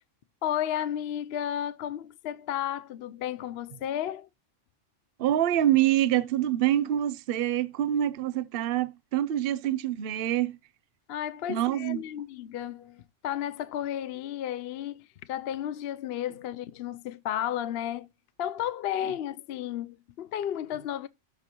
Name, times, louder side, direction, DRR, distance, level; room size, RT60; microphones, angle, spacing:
voice 1, 0.4-4.3 11.1-18.1 18.4-21.1, left 11 dB, 60° left, 0.7 m, -33 dB
voice 2, 5.2-10.6 11.5-12.0, right 12 dB, 55° right, 0.7 m, -26 dB
13.0 x 4.6 x 2.9 m
omnidirectional pair, 1.4 m